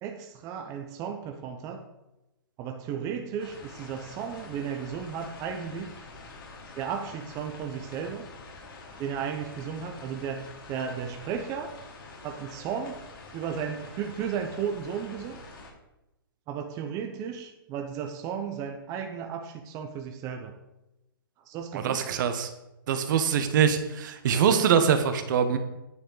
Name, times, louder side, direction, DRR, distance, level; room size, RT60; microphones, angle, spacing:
voice 1, 0.0-1.8 2.6-6.1 6.8-8.3 9.0-11.7 12.2-13.0 13.3-15.4 16.5-20.6 21.5-22.2, right 7 dB, 25° right, 4 dB, 0.9 m, -34 dB
sound 1, 3.4-15.7, left 3 dB, 65° left, 3.0 m, -46 dB
voice 2, 21.7-22.5 22.9-25.6, right 7 dB, 55° right, 8 dB, 1.2 m, -23 dB
9.7 x 7.7 x 4.0 m, 0.94 s
hypercardioid pair, 140°, 12 cm